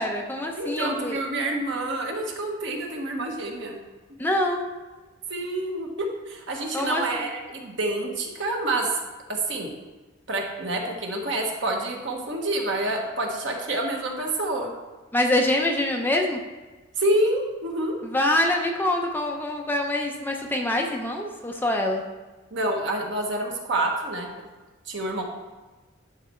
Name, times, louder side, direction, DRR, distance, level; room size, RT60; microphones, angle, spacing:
voice 1, 0.0-1.2 4.2-4.6 6.7-7.3 15.1-16.4 18.0-22.0, left 1 dB, 10° left, 1 dB, 0.6 m, -25 dB
voice 2, 0.6-3.8 5.3-5.9 6.3-8.9 9.3-9.7 10.3-14.7 17.0-17.9 22.5-24.3 24.9-25.2, right 1 dB, 60° right, 1 dB, 1.3 m, -27 dB
10.5 x 4.1 x 4.4 m, 1.2 s
head